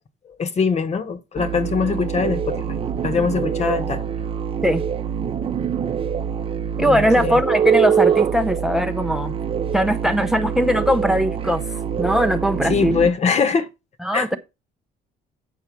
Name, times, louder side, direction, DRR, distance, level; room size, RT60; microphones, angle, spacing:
voice 1, 0.3-4.0 6.8-7.4 12.6-13.7 14.1-14.4, left 5 dB, 40° left, 1.3 m, -22 dB
sound 1, 1.4-13.1, right 7 dB, 35° right, 0.7 m, -24 dB
voice 2, 6.8-9.4 9.7-11.6 12.0-13.0 14.0-14.4, equal, 5° right, 0.6 m, -20 dB
8.8 x 4.4 x 6.3 m
cardioid pair, 110°, 17 cm